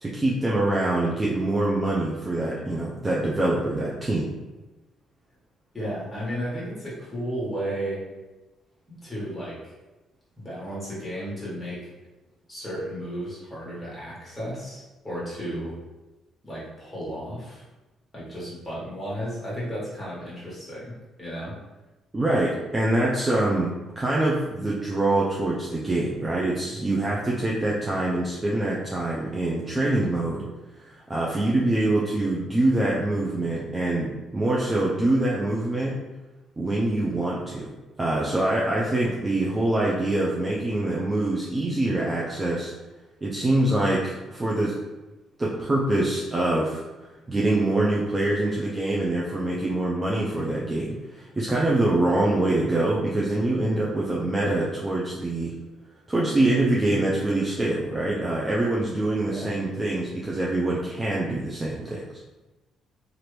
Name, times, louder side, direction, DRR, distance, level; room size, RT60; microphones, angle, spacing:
voice 1, 0.0-4.3 22.1-30.4 30.8-35.9 36.6-37.7 38.0-42.7 43.2-44.8 45.4-55.5 56.1-62.0, right 2 dB, 20° right, -4 dB, 0.4 m, -25 dB
voice 2, 5.7-8.0 9.0-9.7 10.4-11.9 12.5-15.8 16.4-17.6 18.1-21.5 59.3-59.5, equal, 10° left, -8 dB, 1.4 m, -33 dB
2.9 x 2.5 x 3.2 m, 1.1 s
cardioid pair, 125°, 0 cm